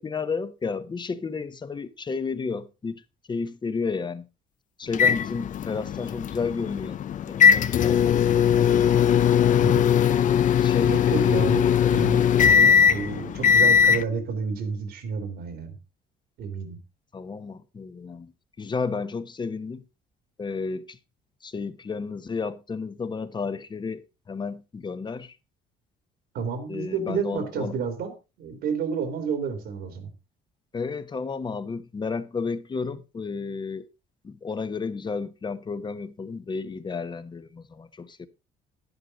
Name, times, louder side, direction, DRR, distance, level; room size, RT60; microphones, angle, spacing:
voice 1, 0.0-3.0 3.3-4.3 4.8-7.0 7.2-9.1 10.6-11.9 17.1-18.3 18.6-19.8 20.4-21.0 21.4-24.0 24.3-25.4 26.7-27.8 30.7-33.9 34.2-38.3, left 4 dB, 25° left, 1.1 m, -32 dB
sound 1, 4.9-14.0, left 8 dB, 50° left, 0.7 m, -20 dB
voice 2, 10.9-15.8 16.4-16.8 26.3-30.1, right 5 dB, 75° right, 2.8 m, -30 dB
11.0 x 11.0 x 4.0 m
cardioid pair, 110°, 17 cm